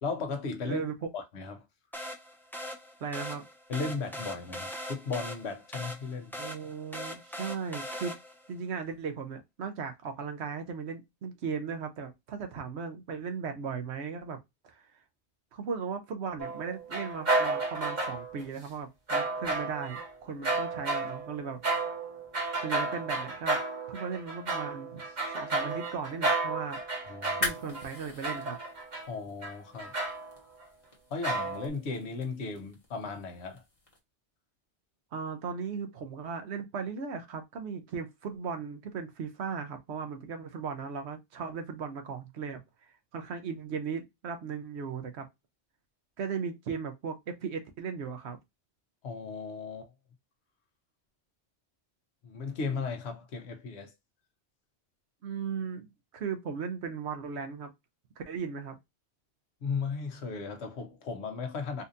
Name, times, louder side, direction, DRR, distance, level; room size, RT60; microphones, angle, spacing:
voice 1, 0.0-0.8 1.1-1.6 3.7-6.3 27.1-27.4 29.1-29.9 31.1-33.6 49.0-49.9 52.2-53.9 59.6-61.8, left 4 dB, 70° left, 1.1 m, -36 dB
sound 1, 1.9-8.5, equal, 5° left, 0.4 m, -41 dB
voice 2, 3.0-3.4 6.4-8.2 8.5-14.4 14.7-14.8 15.5-21.6 22.6-23.6 23.9-25.0 25.3-26.8 27.3-28.6 35.1-45.3 46.2-48.4 55.2-55.9 56.1-57.7 58.2-58.8, right 6 dB, 75° right, 1.0 m, -37 dB
sound 2, 16.4-18.4 19.1-20.1 20.4-29.1 29.4-30.4 31.2-31.7, right 2 dB, 40° right, 1.2 m, -32 dB
sound 3, 27.2-34.0, left 2 dB, 30° left, 1.3 m, -42 dB
4.1 x 2.5 x 2.5 m
omnidirectional pair, 1.2 m